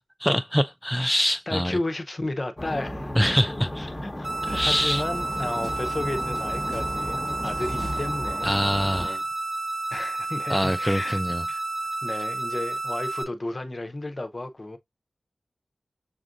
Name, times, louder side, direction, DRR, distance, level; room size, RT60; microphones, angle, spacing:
voice 1, 0.2-1.8 3.1-3.9 4.4-5.0 8.4-9.2 10.5-11.5, equal, ahead, 0.3 m, -24 dB
voice 2, 1.5-3.2 3.8-8.5 9.0-9.2 9.9-11.2 11.5-11.6 12.0-14.8, left 2 dB, 40° left, 0.7 m, -33 dB
sound 1, 2.6-9.1, left 1 dB, 15° left, 1.0 m, -35 dB
sound 2, 4.2-13.2, right 2 dB, 60° right, 1.1 m, -31 dB
sound 3, 4.5-8.9, right 1 dB, 35° right, 1.2 m, -39 dB
6.9 x 2.5 x 2.5 m
cardioid pair, 50°, 0 cm